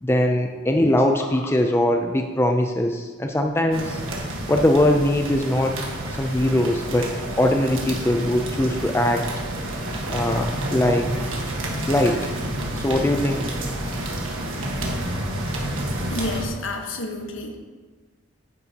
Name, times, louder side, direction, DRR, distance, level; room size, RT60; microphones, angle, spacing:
voice 1, 0.0-4.0 4.5-5.7 6.2-7.1 7.4-9.2 10.1-11.1 11.9-12.2 12.7-13.5, left 1 dB, 10° left, 3 dB, 0.4 m, -21 dB
sound 1, 3.7-16.4, right 1 dB, 80° right, 1.5 m, -29 dB
voice 2, 15.9-17.6, left 1 dB, 75° left, 2 dB, 1.3 m, -30 dB
9.5 x 9.5 x 2.9 m, 1.4 s
head